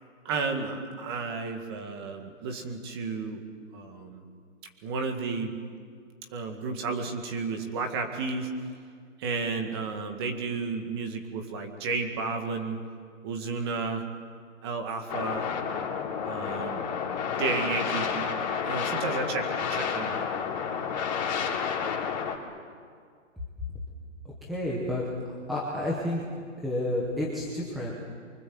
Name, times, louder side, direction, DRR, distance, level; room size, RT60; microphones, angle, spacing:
voice 1, 0.2-3.4 3.7-4.3 4.8-5.5 6.3-8.5 9.2-12.8 13.2-14.1 14.6-15.5 16.2-20.3, right 4 dB, 20° right, 4 dB, 2.1 m, -32 dB
sound 1, 15.1-22.4, left 6 dB, 35° left, 3.4 m, -30 dB
voice 2, 24.2-25.0 25.3-26.2 26.6-27.9, left 1 dB, ahead, -5 dB, 1.0 m, -30 dB
27.5 x 24.5 x 7.9 m, 2.1 s
hypercardioid pair, 170°, 38 cm